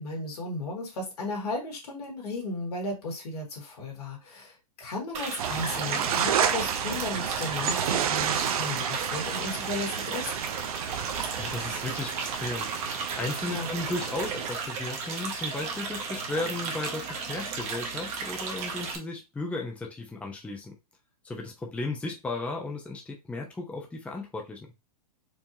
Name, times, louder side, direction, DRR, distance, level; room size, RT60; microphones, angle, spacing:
voice 1, 0.0-10.3 13.5-13.7, left 2 dB, 75° left, 2.1 m, -35 dB
sound 1, 5.1-19.0, right 5 dB, 35° right, 1.1 m, -35 dB
sound 2, 5.4-14.5, right 9 dB, 65° right, 0.6 m, -31 dB
voice 2, 11.0-12.8 13.2-20.7 21.2-24.6, left 2 dB, 5° left, 0.7 m, -35 dB
4.6 x 2.7 x 2.8 m
hypercardioid pair, 125°, 20 cm